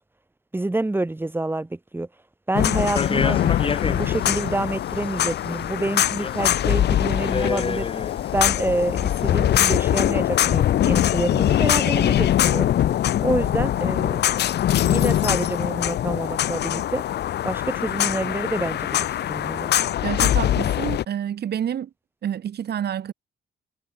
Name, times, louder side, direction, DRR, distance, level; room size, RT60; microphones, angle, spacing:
voice 1, 0.5-2.1 2.5-3.4 3.8-7.9 8.3-12.7 13.2-14.2 14.7-17.0 17.4-19.7, right 2 dB, 10° right, 7.6 m, -27 dB
sound 1, 2.5-21.0, left 12 dB, 70° left, 0.8 m, -22 dB
sound 2, 2.9-4.4 4.9-5.6 6.0-6.7 7.0-8.5 9.1-9.6, left 5 dB, 30° left, 4.9 m, -29 dB
voice 2, 20.0-21.9 22.2-23.1, right 9 dB, 65° right, 7.7 m, -28 dB
cardioid pair, 135°, 18 cm